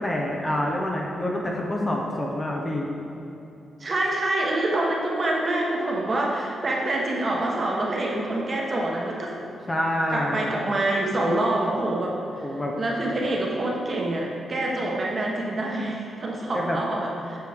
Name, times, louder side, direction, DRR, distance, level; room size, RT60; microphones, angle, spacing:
voice 1, 0.0-2.9 9.7-10.4 12.4-12.7 16.5-16.8, left 1 dB, 15° left, -1 dB, 0.7 m, -27 dB
voice 2, 3.8-9.4 10.1-12.5 12.8-17.4, right 1 dB, 30° right, -2 dB, 1.1 m, -26 dB
7.8 x 6.3 x 3.5 m, 2.8 s
wide cardioid pair, 145°, 0 cm